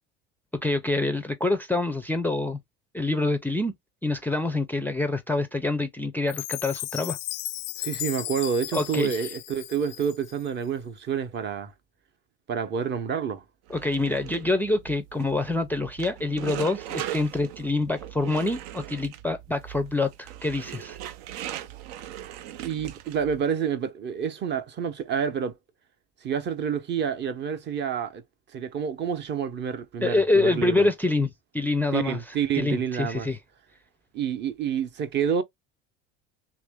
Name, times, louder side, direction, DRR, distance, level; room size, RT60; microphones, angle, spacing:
voice 1, 0.6-2.6 2.9-3.7 4.0-7.2 8.7-9.2 13.7-21.0 30.0-32.2 32.5-33.4, left 2 dB, 5° left, 0.4 m, -26 dB
Chime, 6.3-10.5, left 19 dB, 80° left, 0.5 m, -35 dB
voice 2, 7.8-11.7 12.5-13.4 22.6-25.6 26.2-28.2 28.5-30.9 31.9-33.3 34.1-35.4, right 7 dB, 35° right, 0.6 m, -28 dB
sound 1, 13.7-23.4, right 12 dB, 85° right, 0.5 m, -39 dB
3.0 x 2.5 x 3.4 m
supercardioid pair, 115°, 29 cm